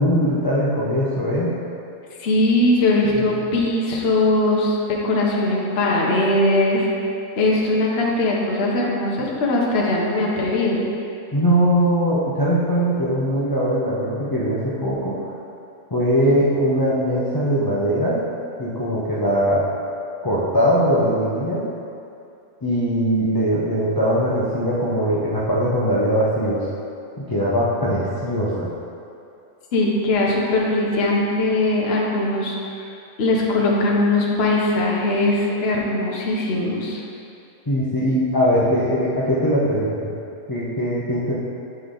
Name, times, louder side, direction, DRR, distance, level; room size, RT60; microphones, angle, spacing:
voice 1, 0.0-1.5 3.2-3.3 11.3-15.2 15.9-18.2 18.6-19.6 20.2-21.7 22.6-26.7 27.2-28.7 37.7-40.1 40.5-41.4, equal, 30° left, -9 dB, 0.4 m, -21 dB
voice 2, 2.2-6.9 7.4-10.8 29.7-32.8 33.2-37.0, left 2 dB, 50° left, -3 dB, 0.9 m, -20 dB
7.8 x 3.3 x 3.8 m, 2.6 s
omnidirectional pair, 1.5 m